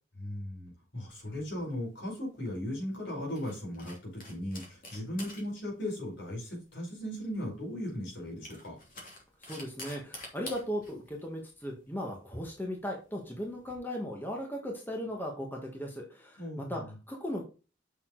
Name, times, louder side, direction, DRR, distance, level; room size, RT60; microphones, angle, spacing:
voice 1, 0.1-8.8 16.4-16.9, left 1 dB, 65° left, -2 dB, 5.2 m, -37 dB
sound 1, 1.1-13.8, left 1 dB, 45° left, 2.8 m, -50 dB
voice 2, 9.4-16.8 17.1-17.4, equal, 10° left, 0 dB, 1.6 m, -37 dB
7.2 x 6.3 x 3.9 m, 0.33 s
head